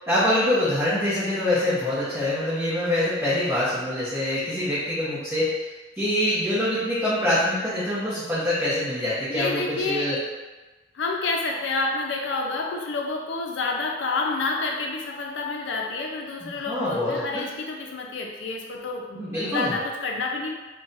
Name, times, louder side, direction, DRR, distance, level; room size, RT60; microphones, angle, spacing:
voice 1, 0.1-5.7 5.9-10.2 16.4-17.4 19.1-19.7, left 1 dB, 15° right, -13 dB, 0.8 m, -25 dB
voice 2, 9.3-10.1 10.9-20.5, left 3 dB, 85° left, 1 dB, 0.5 m, -29 dB
2.5 x 2.2 x 3.9 m, 1.2 s
head